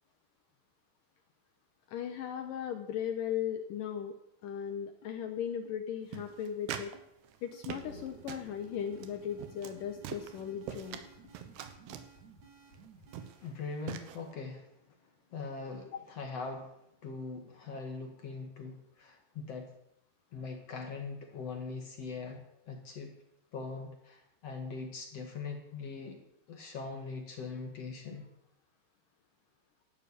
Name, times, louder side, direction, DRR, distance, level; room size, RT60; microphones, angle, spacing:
voice 1, 1.9-4.1 4.4-6.9 7.4-11.0, left 9 dB, 70° left, 6 dB, 2.3 m, -37 dB
sound 1, 5.0-5.2 5.7-5.8 6.3-6.4 6.9-7.1 7.5-7.7 8.1-8.3 9.0-9.1 9.8-9.9 10.5-10.7 11.2-11.3 11.9-12.0, left 7 dB, 85° left, 4.5 m, -59 dB
sound 2, 6.1-7.0 7.3-8.0 8.3-8.5 9.0-9.1 9.4-9.8 10.0-11.0 11.4-12.1 12.7-12.9 13.1-13.5 13.9-14.2, right 9 dB, 85° right, 3.3 m, -43 dB
sound 3, 7.7-13.5, right 2 dB, 50° right, 4.5 m, -55 dB
voice 2, 13.4-14.7 15.3-16.8 17.0-19.7 20.3-23.1 23.5-26.2 26.5-28.3, left 4 dB, 45° left, 3 dB, 2.5 m, -41 dB
12.0 x 11.5 x 8.6 m, 0.80 s
omnidirectional pair, 4.7 m